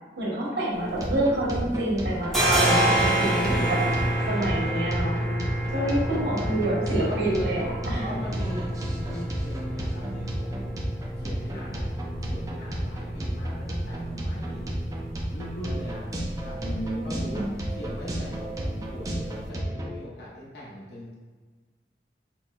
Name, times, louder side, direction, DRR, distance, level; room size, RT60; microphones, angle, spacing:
voice 1, 0.2-3.8 4.3-5.2 5.7-8.0 16.6-17.5, right 1 dB, 75° right, -6 dB, 1.2 m, -28 dB
sound 1, 0.7-1.7 1.9-19.4, right 1 dB, ahead, 0.8 m, -30 dB
sound 2, 0.8-19.9, right 1 dB, 20° right, 0.4 m, -33 dB
voice 2, 3.6-4.2 5.7-6.2 7.1-7.2 8.0-10.6 11.2-14.7 15.3-16.1 16.4-16.7 17.0-18.5 18.9-21.1, left 1 dB, 70° left, -6 dB, 0.9 m, -41 dB
4.4 x 3.5 x 2.3 m, 1.4 s
head